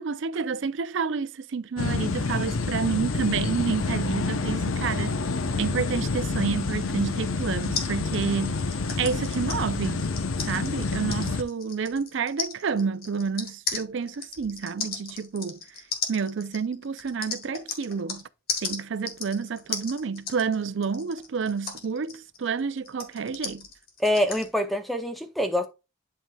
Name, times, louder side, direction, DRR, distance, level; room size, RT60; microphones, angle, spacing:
voice 1, 0.0-5.2 5.6-8.6 9.0-10.0 10.5-15.6 16.1-18.3 18.6-23.7, right 5 dB, 65° right, 0.4 m, -29 dB
sound 1, 1.8-11.4, left 3 dB, 85° left, 0.7 m, -28 dB
sound 2, 7.7-18.2 18.5-24.5, left 5 dB, 45° left, 1.6 m, -35 dB
voice 2, 24.0-25.7, left 1 dB, ahead, 0.5 m, -25 dB
11.0 x 4.7 x 2.3 m
head